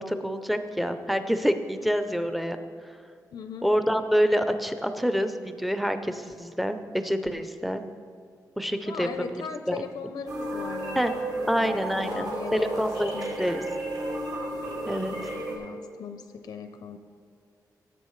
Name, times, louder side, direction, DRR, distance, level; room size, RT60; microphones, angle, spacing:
voice 1, 0.0-2.6 3.6-7.8 8.6-9.8 11.0-11.1 11.5-13.6 14.8-15.1, equal, ahead, 8 dB, 0.5 m, -27 dB
voice 2, 3.3-3.7 8.9-12.9 13.1-13.4 15.1-17.0, left 6 dB, 75° left, 8 dB, 0.5 m, -39 dB
sound 1, 10.3-15.6, right 1 dB, 70° right, 2.8 m, -33 dB
17.0 x 7.9 x 3.1 m, 2.2 s
wide cardioid pair, 165°, 7 cm